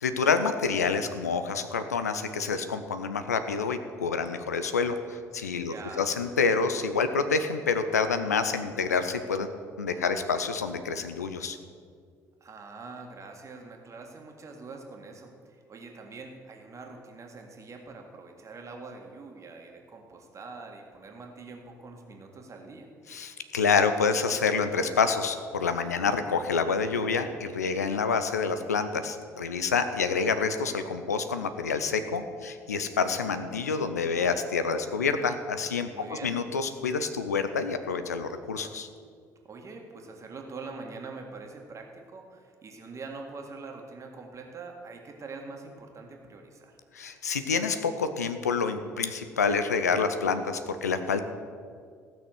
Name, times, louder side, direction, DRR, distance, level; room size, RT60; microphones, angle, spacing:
voice 1, 0.0-9.5 9.8-11.6 23.1-38.9 46.9-51.2, left 5 dB, 80° left, 9 dB, 0.6 m, -28 dB
voice 2, 5.7-6.1 12.4-22.9 35.9-36.4 39.4-46.8, right 3 dB, 35° right, 2 dB, 1.9 m, -44 dB
15.5 x 6.3 x 6.6 m, 2.1 s
figure-of-eight pair, 50°, 9 cm